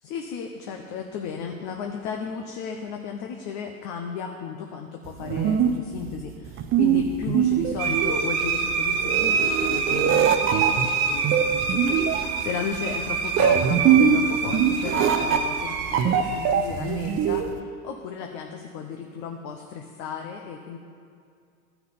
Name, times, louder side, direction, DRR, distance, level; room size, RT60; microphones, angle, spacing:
voice 1, 0.0-20.8, left 6 dB, 50° left, 3 dB, 0.9 m, -35 dB
sound 1, 5.1-17.6, right 8 dB, 30° right, 0.6 m, -23 dB
sound 2, 7.8-17.4, right 5 dB, 70° right, 1.3 m, -27 dB
12.5 x 5.7 x 5.8 m, 2.3 s
hypercardioid pair, 100°, 45 cm